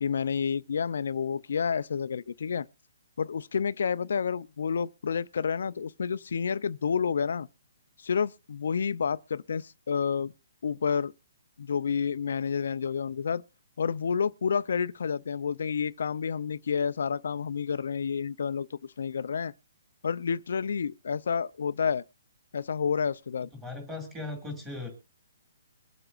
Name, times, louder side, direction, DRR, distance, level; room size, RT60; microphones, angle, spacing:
voice 1, 0.0-2.7 3.2-7.5 8.0-10.3 10.6-11.1 11.6-13.4 13.8-19.5 20.0-22.0 22.5-23.5, left 6 dB, 55° left, 0.5 m, -29 dB
voice 2, 23.5-24.9, left 3 dB, 5° right, 2.0 m, -38 dB
23.0 x 7.9 x 2.4 m
hypercardioid pair, 180°, 0 cm